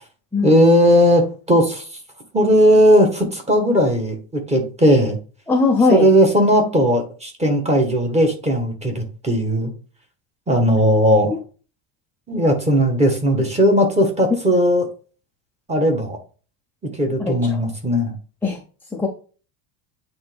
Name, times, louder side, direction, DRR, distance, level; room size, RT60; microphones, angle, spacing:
voice 1, 0.4-1.9 2.3-5.2 5.9-9.7 10.5-11.3 12.3-14.9 15.7-16.2 16.9-18.1, equal, 15° right, 3 dB, 1.5 m, -17 dB
voice 2, 5.5-6.1 11.3-11.4 17.2-17.6 18.4-18.6 18.9-19.1, left 4 dB, 5° left, 0 dB, 0.5 m, -19 dB
8.6 x 3.5 x 3.4 m, 0.37 s
cardioid pair, 155°, 47 cm